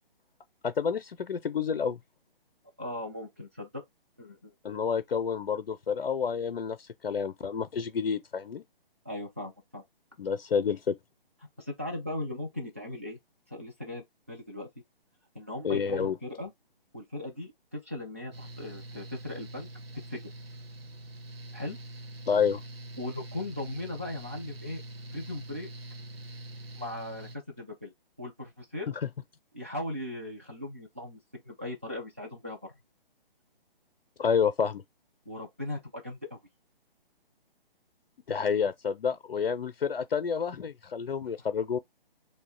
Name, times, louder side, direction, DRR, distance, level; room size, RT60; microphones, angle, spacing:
voice 1, 0.6-2.0 4.6-8.6 10.2-11.0 15.6-16.2 22.3-22.6 34.2-34.8 38.3-41.8, left 6 dB, 70° left, 0.5 m, -29 dB
voice 2, 2.8-3.8 4.2-4.5 9.1-9.8 11.6-13.2 13.5-14.7 15.3-16.5 16.9-19.7 20.1-20.3 21.5-21.8 23.0-24.8 25.1-25.7 26.8-27.9 28.2-28.9 29.5-32.7 35.3-36.4, left 1 dB, 15° right, 0.3 m, -38 dB
Mechanical fan, 18.3-27.4, right 1 dB, 85° right, 0.6 m, -44 dB
2.8 x 2.1 x 3.8 m
figure-of-eight pair, 135°, 29 cm